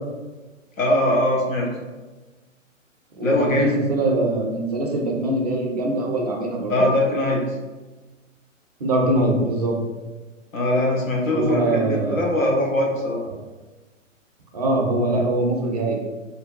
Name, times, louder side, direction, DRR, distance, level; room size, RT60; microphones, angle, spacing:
voice 1, 0.8-1.7 3.2-3.7 6.7-7.4 10.5-13.2, left 1 dB, 90° left, -2 dB, 0.6 m, -21 dB
voice 2, 3.1-6.9 8.8-9.8 11.3-12.2 14.5-16.0, right 1 dB, 35° right, 0 dB, 0.4 m, -22 dB
2.5 x 2.1 x 2.5 m, 1.2 s
figure-of-eight pair, 115°, 39 cm